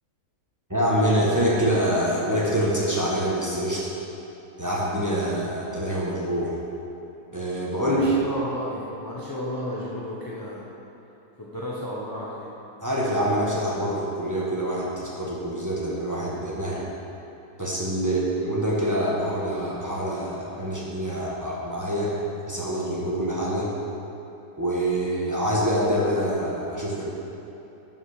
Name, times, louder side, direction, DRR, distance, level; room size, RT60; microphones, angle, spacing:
voice 1, 0.7-3.9 4.6-6.5 7.3-8.1 12.8-16.9 17.6-22.1 22.5-23.7 24.6-27.0, equal, 10° right, -6 dB, 1.3 m, -25 dB
voice 2, 7.8-10.6 11.4-12.5 18.0-18.2, left 1 dB, 15° left, -6 dB, 0.8 m, -33 dB
11.0 x 5.7 x 5.0 m, 3.0 s
omnidirectional pair, 1.7 m